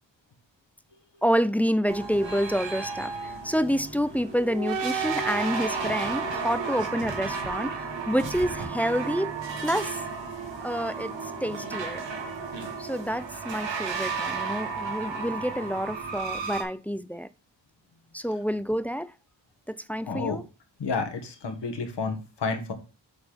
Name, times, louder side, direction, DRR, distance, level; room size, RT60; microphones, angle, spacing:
voice 1, 1.2-3.1 3.4-9.3 9.6-10.0 10.6-11.1 11.4-12.0 12.8-17.3 18.1-19.1 19.7-20.4, equal, 5° left, 0.4 m, -28 dB
sound 1, 1.9-16.6, right 5 dB, 75° right, 1.7 m, -33 dB
voice 2, 20.1-20.4 20.8-22.7, left 4 dB, 65° left, 1.6 m, -30 dB
7.0 x 4.2 x 5.1 m
cardioid pair, 60°, 45 cm